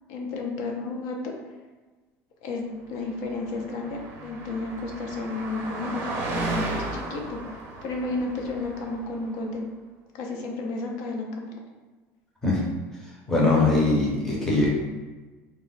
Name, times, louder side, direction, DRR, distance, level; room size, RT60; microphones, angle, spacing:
voice 1, 0.1-1.3 2.4-9.7 10.1-11.5, left 3 dB, 65° left, 1 dB, 0.4 m, -32 dB
Car passing by, 3.3-9.3, right 2 dB, 40° right, 0.6 m, -34 dB
voice 2, 13.3-14.7, left 2 dB, 5° left, -5 dB, 0.5 m, -21 dB
2.2 x 2.0 x 3.8 m, 1.3 s
cardioid pair, 170°, 6 cm